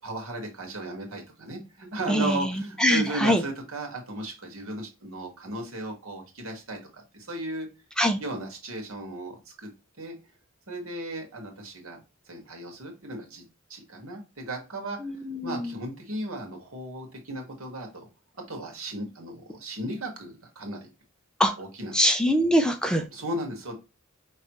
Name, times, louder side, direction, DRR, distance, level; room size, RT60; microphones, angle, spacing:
voice 1, 0.0-7.7 8.2-9.7 10.0-10.2 10.7-12.0 12.3-13.4 13.7-15.0 15.4-18.1 18.5-20.9 21.6-22.0 23.1-23.7, right 1 dB, 80° right, 2 dB, 1.7 m, -36 dB
voice 2, 2.1-2.5 2.8-3.4 8.0-8.2 15.0-15.7 21.4-21.5 21.9-23.0, equal, 5° left, 5 dB, 0.5 m, -23 dB
5.2 x 3.2 x 3.0 m, 0.29 s
head